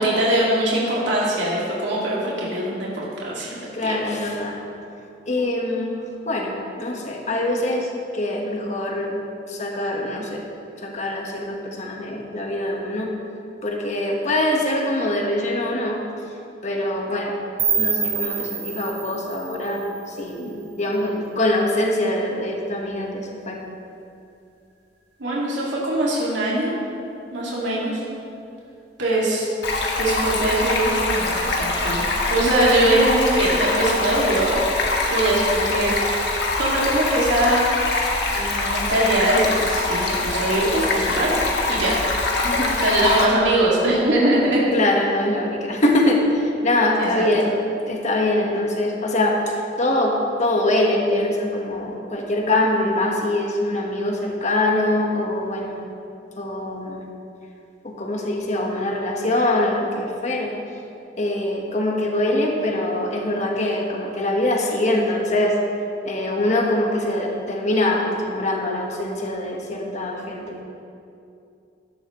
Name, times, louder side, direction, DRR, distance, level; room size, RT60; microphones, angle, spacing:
voice 1, 0.0-4.0 25.2-26.8 27.3-28.0 29.0-29.5 30.0-32.0 32.3-34.5 35.1-35.9 36.6-37.7 38.3-41.3 41.7-41.9 42.8-44.6 47.0-47.3, right 1 dB, 85° right, -6 dB, 2.2 m, -22 dB
voice 2, 3.7-4.6 5.3-5.9 6.2-9.2 9.5-10.4 10.8-13.1 13.6-16.0 16.6-17.4 17.8-23.6 42.4-42.8 44.7-47.5 47.9-55.7 56.4-57.0 57.8-60.6 61.2-65.6 66.0-70.6, left 1 dB, 40° left, 0 dB, 1.4 m, -23 dB
sound 1, 17.6-20.5, right 6 dB, 60° right, 2.7 m, -27 dB
Stream, 29.6-43.2, left 2 dB, 65° left, 1.5 m, -23 dB
14.5 x 11.0 x 3.1 m, 2.6 s
head